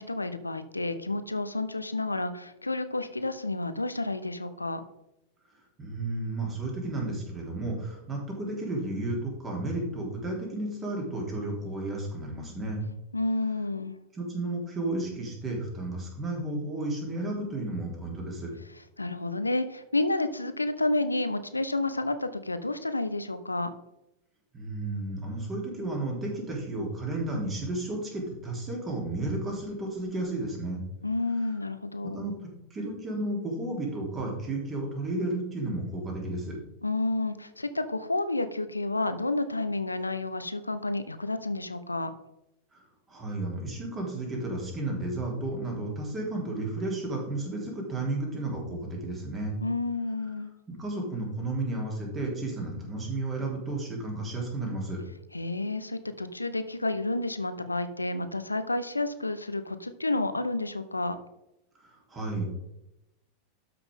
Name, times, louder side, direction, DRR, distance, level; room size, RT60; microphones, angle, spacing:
voice 1, 0.0-4.8 13.1-13.9 19.0-23.7 31.0-32.2 36.8-42.1 49.6-50.5 55.3-61.2, left 2 dB, 85° left, 11 dB, 0.7 m, -30 dB
voice 2, 5.8-12.9 14.1-18.5 24.5-30.8 32.0-36.6 42.7-42.8 43.1-49.6 50.7-55.0 61.8-62.5, right 2 dB, 20° right, -1 dB, 3.5 m, -33 dB
12.5 x 5.9 x 3.7 m, 0.87 s
figure-of-eight pair, 90°, 0 cm